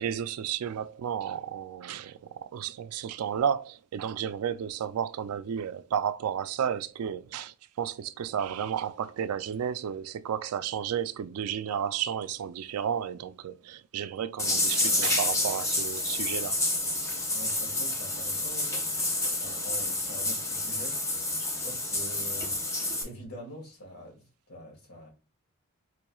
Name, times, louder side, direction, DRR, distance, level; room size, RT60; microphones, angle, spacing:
voice 1, 0.0-16.6, right 8 dB, 85° right, 0.3 m, -32 dB
sound 1, 14.4-23.0, left 2 dB, 15° left, 0.5 m, -29 dB
voice 2, 17.3-20.9 21.4-22.5 23.0-24.2 24.5-25.1, equal, 80° left, 1.7 m, -45 dB
4.4 x 3.0 x 2.3 m
head